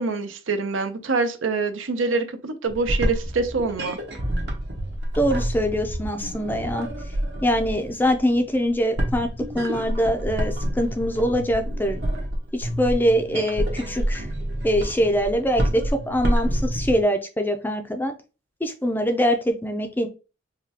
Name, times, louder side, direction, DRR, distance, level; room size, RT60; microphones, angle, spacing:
voice 1, 0.0-4.0, right 4 dB, 85° right, 0.6 m, -25 dB
sound 1, 2.6-17.0, right 1 dB, 60° right, 1.0 m, -28 dB
voice 2, 5.1-6.9 7.4-9.3 9.5-12.0 12.5-14.3 14.6-18.1 18.6-20.1, equal, 10° left, 0.4 m, -23 dB
4.9 x 2.2 x 2.8 m
head